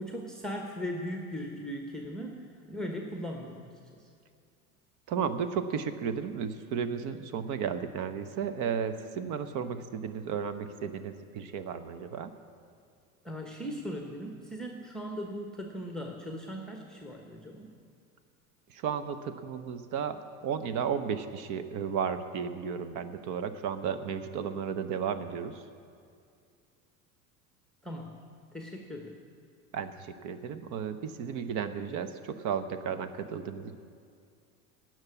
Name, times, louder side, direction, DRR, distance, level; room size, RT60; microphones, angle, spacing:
voice 1, 0.0-4.1 13.2-17.7 27.8-28.2 28.5-29.2, equal, ahead, 2 dB, 1.1 m, -39 dB
voice 2, 5.1-12.3 18.7-25.6 29.7-33.7, right 7 dB, 45° right, 11 dB, 0.9 m, -34 dB
17.5 x 6.1 x 8.3 m, 2.3 s
figure-of-eight pair, 75°, 44 cm